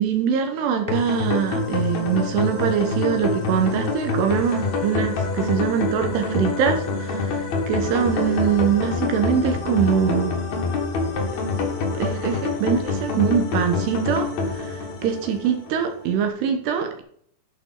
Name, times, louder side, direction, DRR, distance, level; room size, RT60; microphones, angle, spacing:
voice 1, 0.0-10.4 11.9-17.0, right 8 dB, 75° right, 5 dB, 2.6 m, -23 dB
sound 1, 0.9-15.9, left 3 dB, 75° left, 1.7 m, -26 dB
11.0 x 6.0 x 3.9 m, 0.63 s
omnidirectional pair, 5.7 m